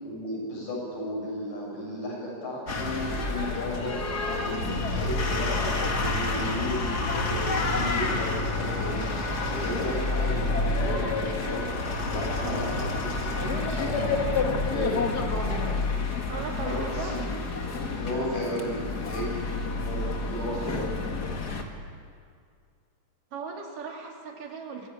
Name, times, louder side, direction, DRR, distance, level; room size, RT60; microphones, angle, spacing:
voice 1, 0.0-4.0 4.3-9.0 9.6-11.6 12.0-13.1 13.6-14.2 14.7-15.0 16.6-17.2 17.9-20.9, equal, 75° left, -4 dB, 9.1 m, -34 dB
sound 1, 2.7-21.6, left 3 dB, 35° left, 1.8 m, -29 dB
voice 2, 12.4-12.8 16.3-17.2 23.3-24.9, right 5 dB, 75° right, 1 dB, 4.2 m, -37 dB
24.5 x 15.5 x 8.8 m, 2.2 s
omnidirectional pair, 3.8 m